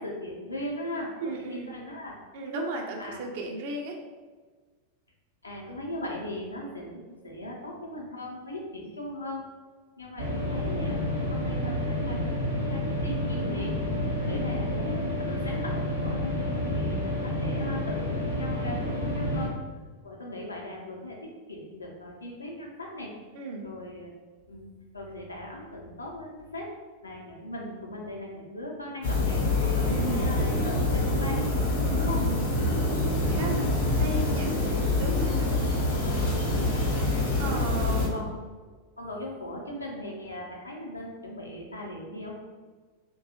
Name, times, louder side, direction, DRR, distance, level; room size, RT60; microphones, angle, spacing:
voice 1, 0.0-2.2 3.0-3.3 5.4-9.5 10.0-13.8 14.2-19.5 20.0-23.1 23.6-24.1 24.5-24.7 24.9-26.7 27.0-31.4 32.0-32.3 37.7-38.3 39.0-42.4, left 1 dB, 80° left, -2 dB, 0.5 m, -39 dB
voice 2, 1.3-1.6 2.3-4.0 14.3-14.5 23.4-23.6 29.8-30.7 31.8-33.1 33.4-33.7 34.0-34.5 35.0-35.8 37.4-38.1, right 2 dB, 50° right, 2 dB, 0.4 m, -35 dB
sound 1, 10.2-19.5, left 1 dB, 80° right, 0.8 m, -29 dB
sound 2, 29.0-38.1, left 2 dB, 55° left, 0.8 m, -26 dB
2.6 x 2.2 x 2.7 m, 1.4 s
figure-of-eight pair, 90°, 0 cm